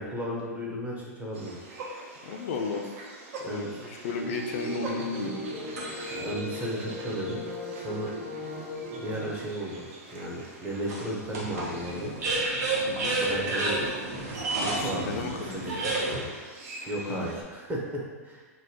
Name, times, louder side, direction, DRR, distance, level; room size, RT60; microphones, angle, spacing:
voice 1, 0.0-1.5 3.4-3.7 6.2-7.4 7.8-8.1 8.9-9.8 10.1-12.1 13.1-13.9 14.6-15.9 16.9-18.4, right 1 dB, 15° right, -4 dB, 0.8 m, -34 dB
saz waterbirds, 1.3-17.4, right 2 dB, 55° right, 0.6 m, -44 dB
voice 2, 2.2-2.8 3.4-5.4 12.9-13.2 14.6-15.6 17.0-17.3, left 4 dB, 55° left, 3 dB, 0.3 m, -34 dB
sound 1, 4.1-9.4, equal, 35° right, 1.3 m, -38 dB
sound 2, 4.6-6.3 7.0-7.1 10.9-16.2, right 2 dB, 75° right, 1.0 m, -31 dB
3.9 x 2.2 x 2.9 m, 1.4 s
hypercardioid pair, 105°, 8 cm